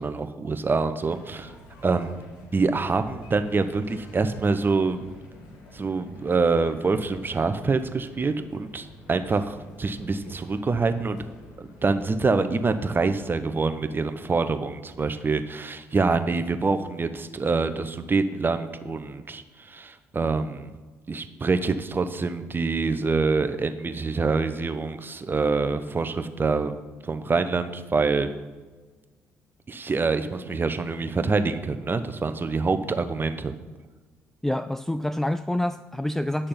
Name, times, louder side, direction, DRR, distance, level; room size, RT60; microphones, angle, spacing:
voice 1, 0.0-1.5 1.8-2.2 2.5-5.0 5.7-11.2 11.8-20.7 21.1-26.7 27.0-28.3 29.7-33.5, right 4 dB, 30° right, 1.0 m, -25 dB
sound 1, 1.0-13.3, left 1 dB, 75° left, 2.2 m, -48 dB
voice 2, 34.4-36.5, left 1 dB, 5° left, 0.3 m, -27 dB
10.5 x 6.6 x 5.8 m
hypercardioid pair, 55°, 7 cm